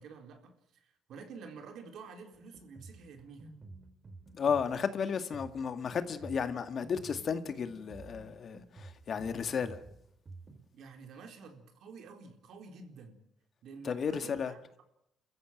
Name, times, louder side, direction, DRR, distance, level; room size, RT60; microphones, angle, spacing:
voice 1, 0.0-3.6 10.7-13.3 13.6-14.8, right 5 dB, 75° right, 4.1 m, -50 dB
Drum kit, 2.3-10.6, right 3 dB, 40° right, 3.6 m, -52 dB
voice 2, 4.3-9.8 13.8-14.5, left 6 dB, 55° left, 2.0 m, -33 dB
29.0 x 14.5 x 9.2 m
cardioid pair, 90°, 0 cm